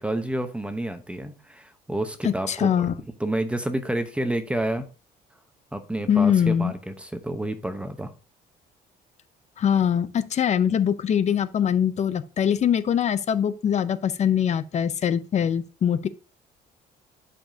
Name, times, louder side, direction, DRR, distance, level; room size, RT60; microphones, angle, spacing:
voice 1, 0.0-2.9 3.2-4.9 5.7-8.1, right 1 dB, 5° right, 0.9 m, -29 dB
voice 2, 2.2-2.9 6.1-6.7 9.6-16.1, left 8 dB, 45° left, 0.7 m, -23 dB
11.5 x 5.1 x 2.8 m
cardioid pair, 110°, 17 cm